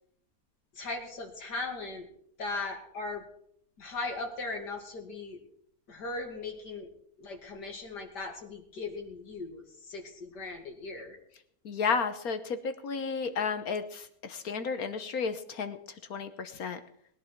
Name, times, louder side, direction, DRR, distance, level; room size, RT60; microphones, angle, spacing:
voice 1, 0.7-2.1 2.4-3.2 3.8-5.4 5.9-6.9 7.2-11.2, left 3 dB, 75° left, 3 dB, 3.0 m, -38 dB
voice 2, 11.6-15.8 16.1-16.8, left 5 dB, 60° left, 10 dB, 1.4 m, -32 dB
20.5 x 11.0 x 4.5 m, 0.67 s
omnidirectional pair, 1.8 m